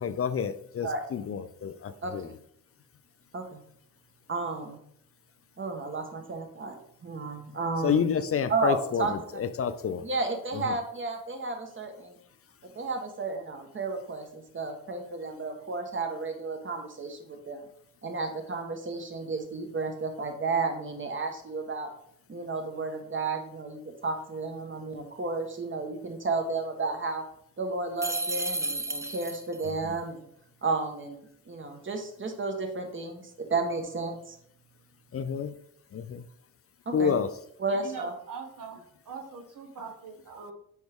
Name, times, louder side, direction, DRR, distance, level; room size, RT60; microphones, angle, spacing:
voice 1, 0.0-2.3 7.8-10.0 10.7-10.8 29.9-30.0 35.1-35.5 35.9-36.2 36.9-37.3, left 7 dB, 45° left, 11 dB, 0.5 m, -29 dB
voice 2, 2.0-2.3 3.3-3.6 4.3-4.8 5.6-8.0 8.5-9.1 10.0-12.2 12.7-17.6 18.0-21.9 22.3-27.3 27.6-30.2 30.6-34.4 36.9-37.1 37.6-38.1, right 3 dB, 35° right, 5 dB, 1.2 m, -32 dB
sound 1, 28.0-29.7, right 2 dB, 10° right, 0.5 m, -32 dB
voice 3, 37.7-40.5, right 5 dB, 70° right, 3 dB, 1.4 m, -42 dB
6.3 x 4.6 x 3.5 m, 0.70 s
cardioid pair, 80°, 33 cm